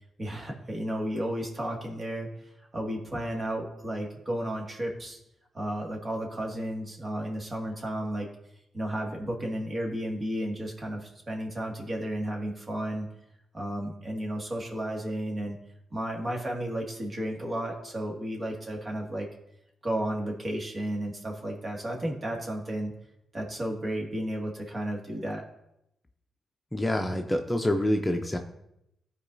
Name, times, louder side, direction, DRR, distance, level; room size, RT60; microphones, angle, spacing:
voice 1, 0.2-5.2 5.5-8.3 8.7-13.1 13.5-15.6 15.9-19.3 19.8-22.9 23.3-25.4, right 1 dB, 35° right, 0 dB, 2.0 m, -33 dB
voice 2, 26.7-28.4, left 1 dB, 20° left, 4 dB, 0.7 m, -26 dB
13.0 x 4.6 x 2.7 m, 0.82 s
supercardioid pair, 50°, 0 cm